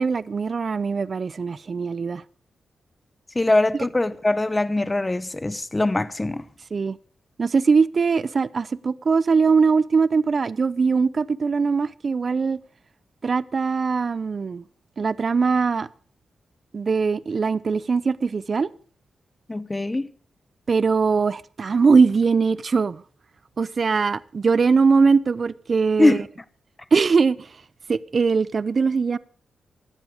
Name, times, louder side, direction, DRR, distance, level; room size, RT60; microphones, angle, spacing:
voice 1, 0.0-2.2 6.7-7.0 7.4-12.6 13.2-14.6 15.0-15.9 16.7-18.7 20.7-23.0 23.6-26.2 26.9-27.5 27.9-29.2, right 5 dB, 50° right, 0.6 m, -21 dB
voice 2, 3.3-6.4 19.5-20.1 26.0-26.2, left 2 dB, 20° left, 0.9 m, -22 dB
16.5 x 12.0 x 5.0 m
cardioid pair, 85°, 0 cm